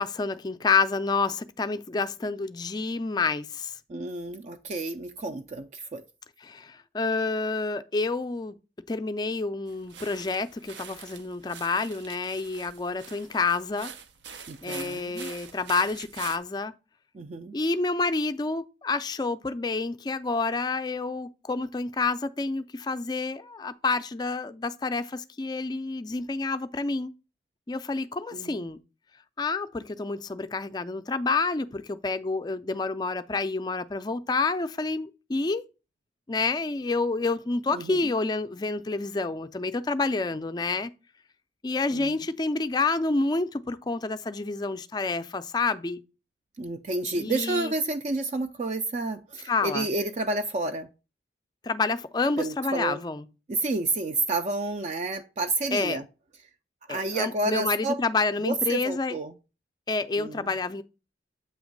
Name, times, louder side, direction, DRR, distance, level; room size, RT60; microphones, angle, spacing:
voice 1, 0.0-3.7 6.4-8.5 8.9-13.9 14.6-16.7 17.5-27.1 27.7-28.8 29.4-35.7 36.3-40.9 41.6-46.0 47.2-47.7 49.5-49.9 51.6-53.3 55.7-56.0 56.9-59.2 59.9-60.8, left 3 dB, 25° left, 0.4 m, -28 dB
voice 2, 3.9-6.0 14.5-15.3 17.1-17.6 28.3-28.7 37.7-38.1 41.9-42.2 46.6-50.9 52.4-53.0 53.5-56.0 56.9-58.0 58.4-59.3 60.2-60.5, right 2 dB, 40° right, 0.4 m, -30 dB
sound 1, 9.7-16.4, right 7 dB, 90° right, 0.7 m, -44 dB
7.8 x 3.0 x 5.1 m
head